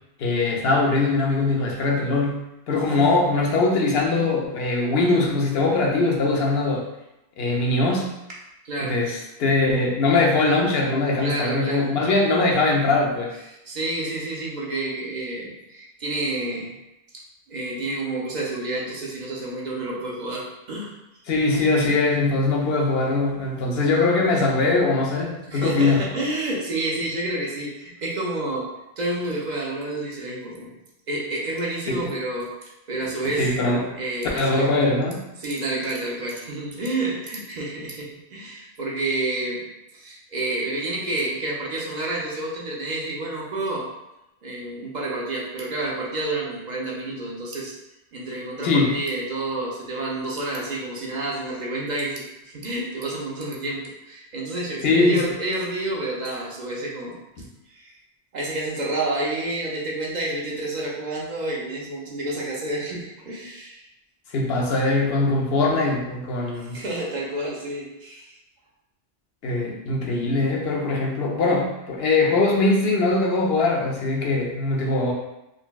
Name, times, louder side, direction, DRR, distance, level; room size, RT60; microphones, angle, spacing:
voice 1, 0.2-6.8 7.4-8.1 8.8-13.3 21.3-26.2 31.9-32.1 33.4-33.8 34.4-35.2 48.6-48.9 54.8-55.3 64.3-66.8 69.4-75.1, left 3 dB, 65° left, -1 dB, 0.8 m, -21 dB
voice 2, 2.8-3.2 8.6-9.0 11.2-11.9 13.7-16.7 17.5-20.9 25.5-28.7 29.0-30.7 31.1-33.5 34.0-34.7 35.4-39.7 39.9-43.9 44.4-47.7 48.1-57.2 57.7-57.9 58.3-63.9 66.7-68.4, right 2 dB, 50° right, -3 dB, 0.7 m, -29 dB
3.9 x 2.1 x 2.2 m, 0.91 s
omnidirectional pair, 1.1 m